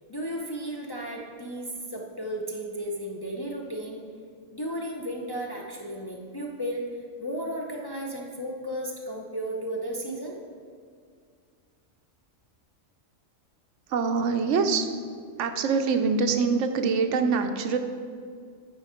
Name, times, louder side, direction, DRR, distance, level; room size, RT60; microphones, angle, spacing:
voice 1, 0.1-4.0 4.5-6.8 7.2-10.3, right 1 dB, 35° left, -1 dB, 0.4 m, -34 dB
voice 2, 13.9-14.9 15.4-17.8, right 5 dB, 70° right, 6 dB, 0.9 m, -24 dB
9.1 x 4.5 x 5.0 m, 2.1 s
omnidirectional pair, 1.3 m